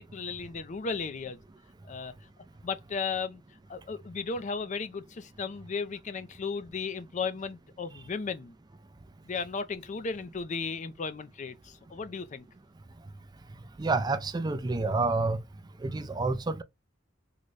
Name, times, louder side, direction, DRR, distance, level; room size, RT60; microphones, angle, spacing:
voice 1, 0.1-1.4 1.9-2.1 2.6-3.4 3.7-8.5 9.3-12.5, left 5 dB, 40° left, 0.4 m, -35 dB
voice 2, 13.8-15.4 15.8-16.6, right 3 dB, 20° right, 0.4 m, -28 dB
3.8 x 2.2 x 3.2 m
head